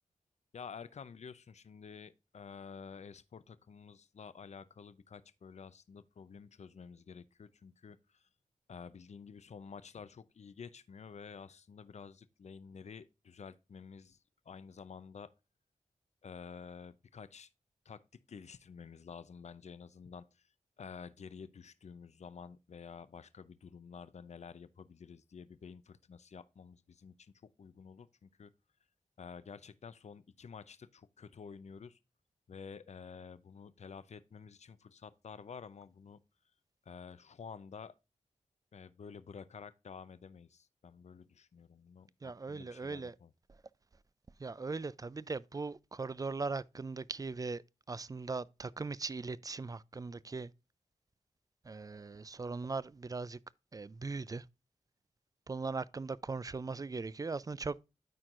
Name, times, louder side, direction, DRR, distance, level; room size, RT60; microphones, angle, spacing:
voice 1, 0.5-8.3 8.7-14.2 14.5-15.3 16.2-17.5 17.9-18.0 18.3-20.5 20.8-28.5 29.2-32.0 32.5-36.2 36.9-37.9 38.7-43.3, left 6 dB, 60° left, 0.6 m, -50 dB
voice 2, 42.2-43.2 43.5-43.6 44.4-47.6 47.9-50.5 51.6-53.4 53.7-54.5 55.5-57.8, right 4 dB, 30° right, 0.4 m, -39 dB
13.0 x 4.5 x 2.4 m
cardioid pair, 55°, 13 cm